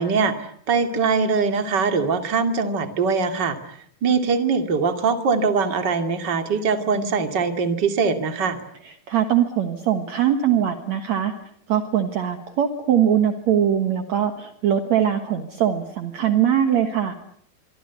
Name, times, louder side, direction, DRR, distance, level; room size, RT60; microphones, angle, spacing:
voice 1, 0.0-8.6, right 5 dB, 35° right, 7 dB, 2.6 m, -22 dB
voice 2, 8.8-11.3 11.7-17.1, right 9 dB, 60° right, 7 dB, 2.5 m, -21 dB
25.5 x 24.5 x 8.2 m, 0.64 s
omnidirectional pair, 4.1 m